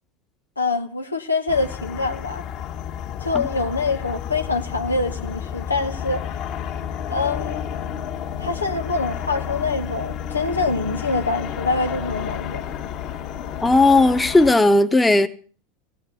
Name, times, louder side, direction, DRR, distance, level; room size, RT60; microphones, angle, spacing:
voice 1, 0.6-2.4 3.2-6.3 7.1-7.6 8.4-12.6, left 3 dB, 80° left, 1.2 m, -25 dB
sound 1, 1.5-14.6, left 9 dB, 45° left, 2.1 m, -31 dB
voice 2, 13.6-15.3, left 2 dB, 10° left, 1.2 m, -15 dB
17.0 x 9.0 x 8.3 m
figure-of-eight pair, 75°, 0 cm